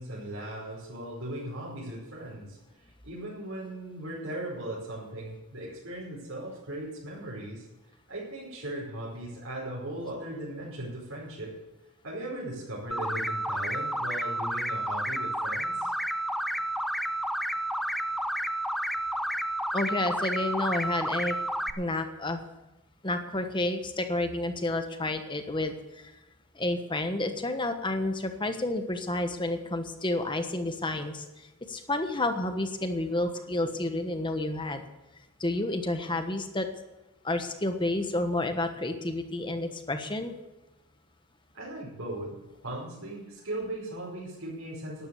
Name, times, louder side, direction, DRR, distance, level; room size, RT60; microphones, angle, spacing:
voice 1, 0.0-7.7 8.1-11.5 12.0-15.9 41.5-42.4 42.6-45.1, right 1 dB, 65° right, -7 dB, 5.1 m, -38 dB
sound 1, 12.9-21.7, right 1 dB, ahead, 0.4 m, -31 dB
voice 2, 19.7-21.3 21.8-22.4 23.0-26.1 26.5-34.8 35.4-36.7 37.2-40.3, left 2 dB, 20° left, 7 dB, 1.2 m, -30 dB
12.5 x 11.0 x 7.1 m, 1.1 s
head